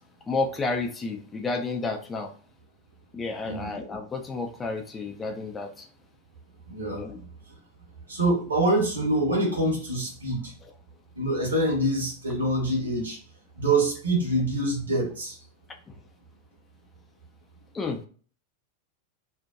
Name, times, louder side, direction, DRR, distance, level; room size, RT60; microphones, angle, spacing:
voice 1, 0.3-2.3 3.1-5.9 6.9-7.2 15.9-16.0 17.7-18.0, left 3 dB, 15° left, 3 dB, 0.4 m, -31 dB
voice 2, 6.7-7.3 8.1-10.5 11.1-13.2 13.6-15.4, right 1 dB, 75° right, -1 dB, 1.0 m, -25 dB
2.5 x 2.2 x 2.4 m, 0.41 s
figure-of-eight pair, 90°, 0 cm